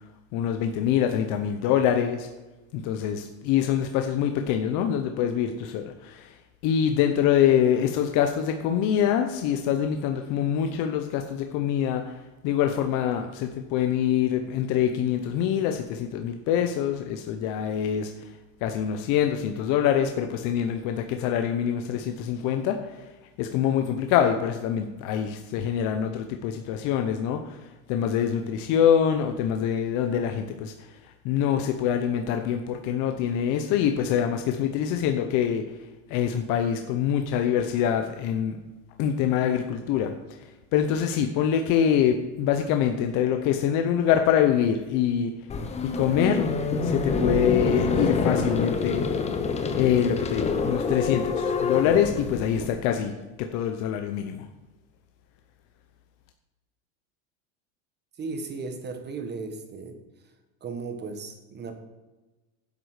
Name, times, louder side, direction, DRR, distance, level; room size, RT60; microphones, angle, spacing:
voice 1, 0.3-2.3 2.7-6.3 6.6-12.2 12.4-18.1 18.6-22.8 23.4-27.6 27.9-30.7 31.2-35.6 36.1-38.6 39.0-40.1 40.7-45.3 46.0-46.5 46.8-49.1 49.8-54.4, left 9 dB, 45° left, 5 dB, 0.9 m, -25 dB
sound 1, 45.5-52.7, left 4 dB, 15° left, 0.9 m, -26 dB
voice 2, 58.2-60.0 60.6-61.7, right 4 dB, 25° right, 7 dB, 1.4 m, -35 dB
10.5 x 8.1 x 5.0 m, 1.1 s
supercardioid pair, 145°, 42 cm